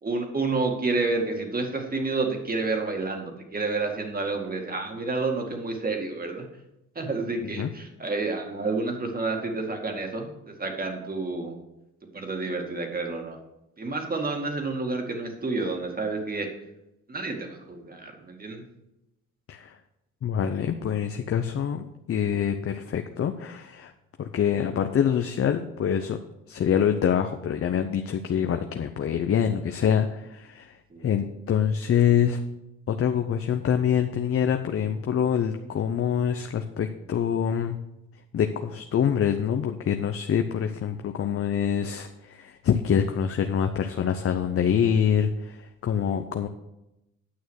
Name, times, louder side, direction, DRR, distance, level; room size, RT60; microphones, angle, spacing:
voice 1, 0.0-6.5 7.0-11.6 12.1-13.4 13.8-16.5 17.1-18.6 30.9-31.1, right 3 dB, 30° right, 3 dB, 2.1 m, -29 dB
voice 2, 20.2-23.9 24.2-26.2 26.5-30.8 31.0-32.4 32.9-37.8 38.3-46.5, left 8 dB, 50° left, 7 dB, 0.7 m, -25 dB
9.5 x 6.3 x 6.4 m, 0.89 s
cardioid pair, 90°, 30 cm